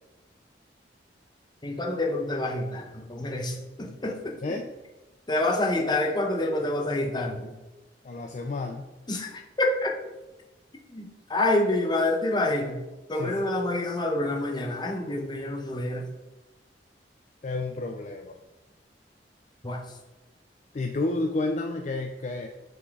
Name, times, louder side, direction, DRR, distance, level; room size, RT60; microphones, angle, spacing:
voice 1, 1.6-4.4 5.3-7.5 9.1-9.9 10.9-12.8 13.1-16.1 19.6-19.8, left 2 dB, 25° left, 2 dB, 0.8 m, -27 dB
voice 2, 8.0-8.9 13.1-13.5 17.4-18.4 20.7-22.5, left 2 dB, 45° left, 4 dB, 0.4 m, -31 dB
5.8 x 4.2 x 4.8 m, 1.1 s
head